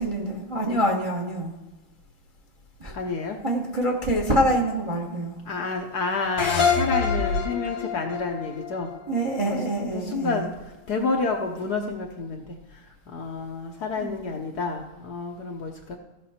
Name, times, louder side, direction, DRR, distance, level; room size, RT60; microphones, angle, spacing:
voice 1, 0.0-1.5 2.8-2.9 3.4-5.4 9.1-10.4 14.0-14.1, right 1 dB, 25° right, 0 dB, 0.8 m, -25 dB
voice 2, 2.9-3.4 5.5-8.9 9.4-10.5 10.9-12.6 13.1-16.0, left 4 dB, 60° left, 2 dB, 1.2 m, -29 dB
sound 1, 6.4-9.7, left 5 dB, 85° left, 2.3 m, -26 dB
15.5 x 6.1 x 4.3 m, 1.1 s
omnidirectional pair, 2.4 m